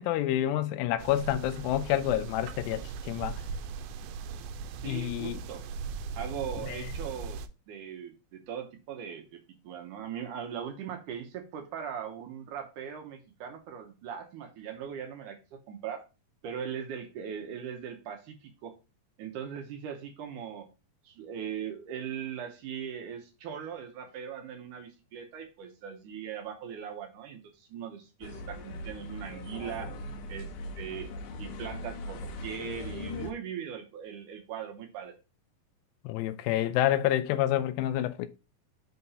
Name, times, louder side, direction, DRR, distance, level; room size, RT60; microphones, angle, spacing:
voice 1, 0.0-3.3 4.8-5.4 6.7-6.8 36.1-38.3, left 13 dB, 85° left, 2.2 m, -28 dB
sound 1, 1.0-7.5, right 5 dB, 85° right, 2.4 m, -39 dB
voice 2, 4.8-5.6 6.2-7.4 7.7-16.0 16.4-18.7 19.2-20.7 21.0-29.9 30.3-30.5 30.8-31.1 31.4-35.1, right 8 dB, 70° right, 2.3 m, -40 dB
sound 2, 28.2-33.3, left 1 dB, 65° left, 2.3 m, -40 dB
5.7 x 4.3 x 5.4 m
omnidirectional pair, 4.1 m